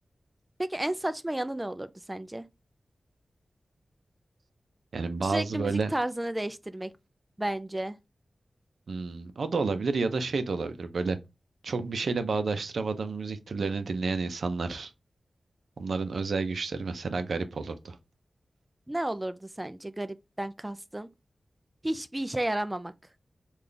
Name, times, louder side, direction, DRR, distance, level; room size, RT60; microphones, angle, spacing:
voice 1, 0.6-2.5 5.2-6.9 7.4-8.0 18.9-21.1 21.8-22.9, right 1 dB, 15° right, 0.4 m, -32 dB
voice 2, 4.9-5.9 8.9-11.2 11.6-14.9 15.8-18.0, right 4 dB, 80° right, 0.5 m, -30 dB
3.8 x 2.4 x 3.2 m
wide cardioid pair, 65°, 0 cm